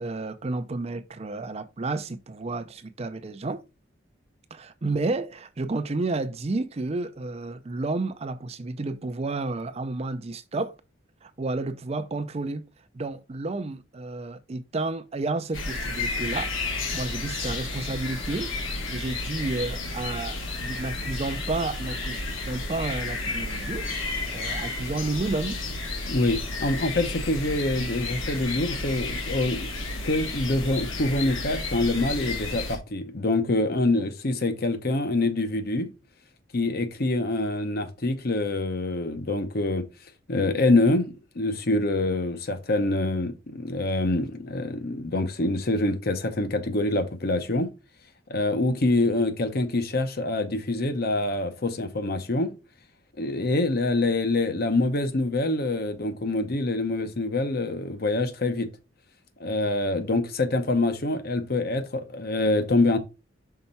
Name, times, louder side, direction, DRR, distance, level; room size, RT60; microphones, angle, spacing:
voice 1, 0.0-3.6 4.5-10.8 11.2-12.7 12.9-23.9 24.3-25.6, right 3 dB, 30° right, 0.5 m, -31 dB
sound 1, 15.5-32.8, left 3 dB, 90° left, 1.8 m, -32 dB
voice 2, 26.1-29.7 30.0-35.9 36.5-39.8 40.3-47.7 48.3-52.5 53.2-58.7 59.4-63.0, left 2 dB, 50° left, 0.9 m, -25 dB
5.7 x 4.4 x 4.1 m
head